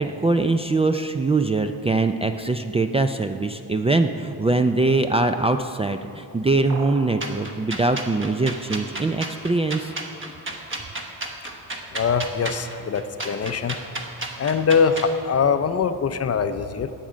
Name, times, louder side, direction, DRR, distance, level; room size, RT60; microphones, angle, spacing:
voice 1, 0.0-9.9, right 3 dB, 15° right, 7 dB, 0.3 m, -22 dB
sound 1, 6.7-7.3, right 3 dB, 60° right, 1.4 m, -36 dB
sound 2, 7.2-15.1, right 2 dB, 35° right, 1.2 m, -33 dB
voice 2, 11.9-13.8 14.4-16.9, left 6 dB, 45° left, 10 dB, 0.6 m, -22 dB
18.0 x 7.5 x 5.1 m, 2.7 s
wide cardioid pair, 130°, 36 cm